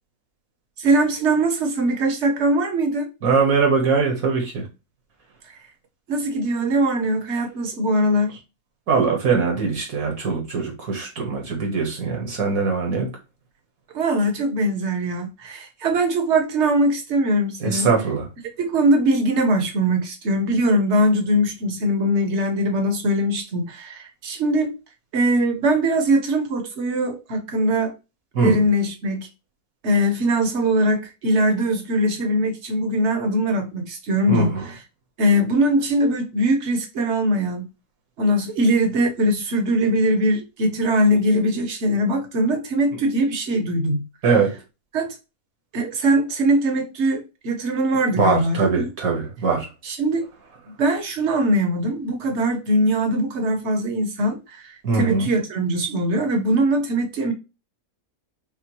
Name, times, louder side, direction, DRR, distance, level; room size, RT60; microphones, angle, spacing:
voice 1, 0.8-3.1 6.1-8.4 13.9-17.9 18.6-24.8 25.1-27.9 28.4-29.2 29.8-34.5 35.2-37.7 38.2-44.0 44.9-45.2 45.7-48.9 49.8-50.3 50.8-57.3, right 1 dB, 55° right, 1.2 m, -21 dB
voice 2, 3.2-4.7 8.9-13.1 17.6-18.3 28.3-28.6 34.3-34.7 44.2-44.5 48.2-49.7 54.8-55.3, right 4 dB, 75° right, 1.8 m, -21 dB
5.8 x 2.2 x 2.9 m
omnidirectional pair, 1.5 m